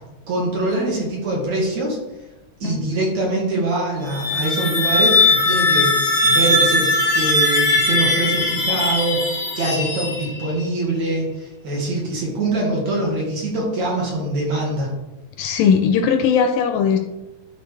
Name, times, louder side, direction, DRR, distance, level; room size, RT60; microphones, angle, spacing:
voice 1, 0.3-2.0 2.6-5.9 6.2-14.9, right 2 dB, 55° right, -3 dB, 2.7 m, -23 dB
sound 1, 4.0-10.6, left 2 dB, 50° left, 1.2 m, -19 dB
voice 2, 15.4-17.0, left 6 dB, 80° left, 7 dB, 2.1 m, -18 dB
12.0 x 4.1 x 3.4 m, 0.99 s
omnidirectional pair, 4.2 m